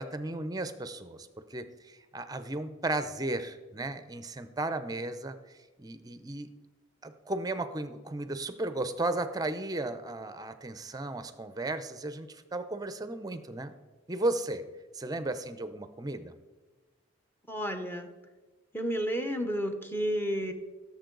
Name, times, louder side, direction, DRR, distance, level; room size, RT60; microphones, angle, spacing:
voice 1, 0.0-5.4 5.8-6.5 7.0-13.7 14.1-14.6 14.9-16.3, right 2 dB, 20° right, 11 dB, 0.6 m, -35 dB
voice 2, 17.5-18.1 18.7-20.5, equal, 10° left, 6 dB, 0.9 m, -31 dB
16.5 x 7.3 x 3.9 m, 1.3 s
head